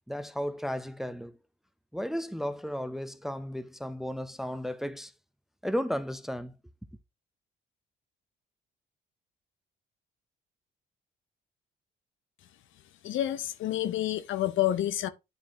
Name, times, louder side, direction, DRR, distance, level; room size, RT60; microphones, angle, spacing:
voice 1, 0.1-1.4 1.9-5.1 5.6-6.6, equal, ahead, 0.6 m, -34 dB
voice 2, 13.0-15.1, left 13 dB, 75° left, 0.7 m, -28 dB
9.6 x 4.5 x 2.9 m
cardioid pair, 90°, 20 cm